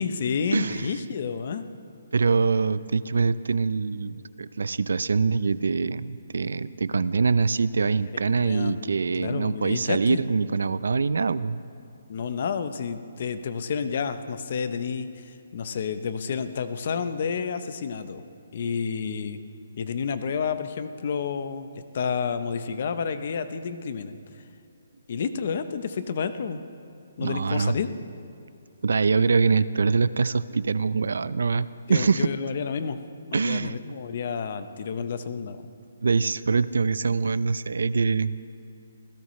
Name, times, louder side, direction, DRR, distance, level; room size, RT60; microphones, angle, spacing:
voice 1, 0.0-1.6 8.1-10.2 12.1-18.2 18.5-19.4 19.8-21.7 21.9-24.2 25.1-26.6 27.2-27.9 31.9-33.0 33.3-35.6, left 6 dB, 45° left, 10 dB, 0.8 m, -30 dB
voice 2, 0.5-0.9 2.1-11.6 27.2-27.8 28.8-32.3 33.3-33.8 36.0-38.3, right 4 dB, 85° right, 16 dB, 0.5 m, -24 dB
26.5 x 16.5 x 3.2 m, 2.6 s
hypercardioid pair, 170°, 0 cm